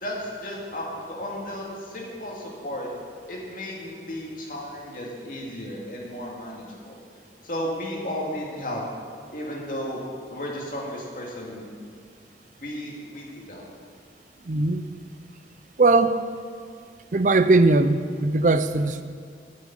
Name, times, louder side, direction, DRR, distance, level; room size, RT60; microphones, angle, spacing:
voice 1, 0.0-2.9 3.3-7.0 7.4-8.8 9.3-10.0 10.3-11.7 12.6-13.7, equal, 50° left, 2.4 m, -34 dB
voice 2, 14.5-14.9 15.8-16.2 17.1-19.0, right 3 dB, 45° right, 0.5 m, -19 dB
9.7 x 7.4 x 9.2 m
head